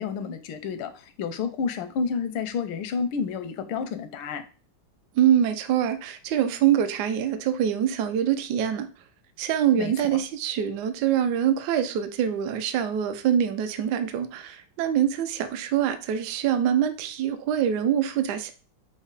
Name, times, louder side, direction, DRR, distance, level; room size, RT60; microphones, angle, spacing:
voice 1, 0.0-4.4 9.8-10.2, left 5 dB, 85° left, 9 dB, 1.5 m, -30 dB
voice 2, 5.2-8.9 9.4-18.5, right 9 dB, 75° right, 9 dB, 1.0 m, -24 dB
6.0 x 2.1 x 3.9 m, 0.38 s
omnidirectional pair, 2.2 m